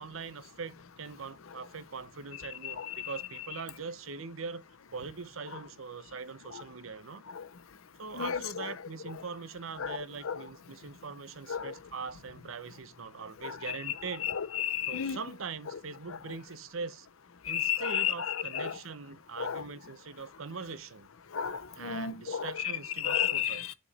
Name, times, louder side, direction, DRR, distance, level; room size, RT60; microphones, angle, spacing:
voice 1, 0.0-4.6 4.9-7.2 8.0-14.3 14.9-17.1 17.4-21.1 21.8-23.6, right 5 dB, 75° right, 0.8 m, -42 dB
voice 2, 2.6-3.5 5.5-5.6 6.5-6.6 7.3-7.4 8.1-8.7 9.1-9.2 9.8-10.4 11.5-11.7 13.4-15.2 15.7-15.8 16.1-16.2 17.5-18.8 19.4-19.6 21.3-23.7, left 9 dB, 75° left, 0.7 m, -33 dB
10.0 x 4.5 x 4.1 m
head